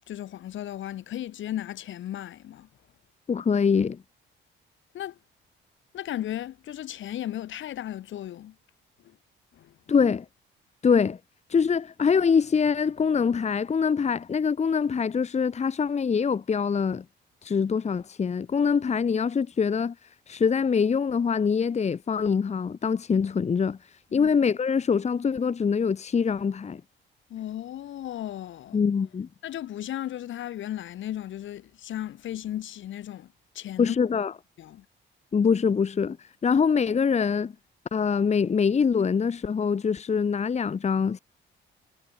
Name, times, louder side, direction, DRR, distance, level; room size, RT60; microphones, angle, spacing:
voice 1, 0.1-2.7 4.9-5.2 5.9-8.5 9.5-9.7 24.1-24.3 27.3-28.8 29.4-33.3 33.5-34.0 34.6-34.8, left 12 dB, 75° left, 2.8 m, -35 dB
voice 2, 3.3-4.0 9.9-10.2 10.8-11.2 11.5-17.0 17.4-19.9 20.3-23.8 24.1-26.8 28.7-29.3 33.8-34.3 35.3-36.2 36.4-37.5 37.9-41.2, left 6 dB, 35° left, 1.1 m, -24 dB
cardioid pair, 90°, 20 cm